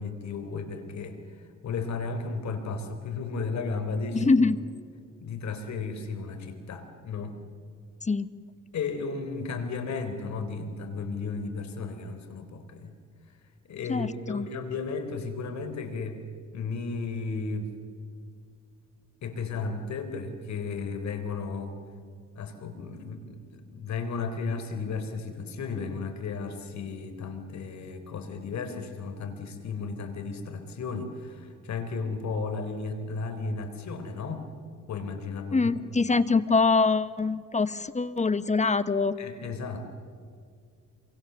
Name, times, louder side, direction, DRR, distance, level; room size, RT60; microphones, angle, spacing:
voice 1, 0.0-4.3 5.2-7.4 8.7-12.9 13.7-16.2 16.5-17.7 19.2-21.8 22.3-34.5 34.9-35.7 39.2-39.8, left 4 dB, 65° left, 8 dB, 3.7 m, -34 dB
voice 2, 4.1-4.6 8.0-8.3 13.9-14.5 35.5-39.2, left 4 dB, 25° left, 14 dB, 1.1 m, -24 dB
27.5 x 24.0 x 6.9 m, 2.2 s
cardioid pair, 90°, 30 cm